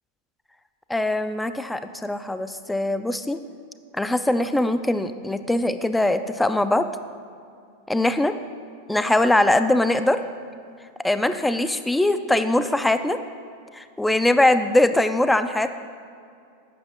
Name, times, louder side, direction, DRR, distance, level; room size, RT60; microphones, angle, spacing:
voice 1, 0.9-3.4 3.9-6.9 7.9-8.4 8.9-10.2 11.0-13.2 13.7-15.7, left 1 dB, 5° left, 10 dB, 0.3 m, -21 dB
8.3 x 6.2 x 4.8 m, 2.4 s
figure-of-eight pair, 90°, 0 cm